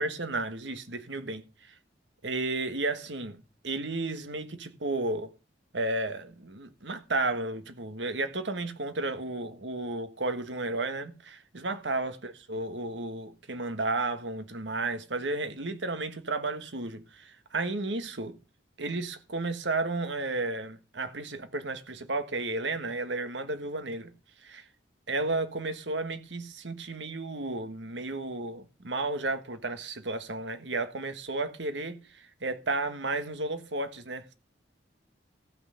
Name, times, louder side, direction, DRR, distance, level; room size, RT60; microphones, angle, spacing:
voice 1, 0.0-1.7 2.2-3.4 3.6-5.3 5.7-18.4 18.8-24.1 24.4-24.7 25.1-34.3, right 2 dB, 80° right, 1.6 m, -33 dB
15.0 x 5.8 x 6.6 m
head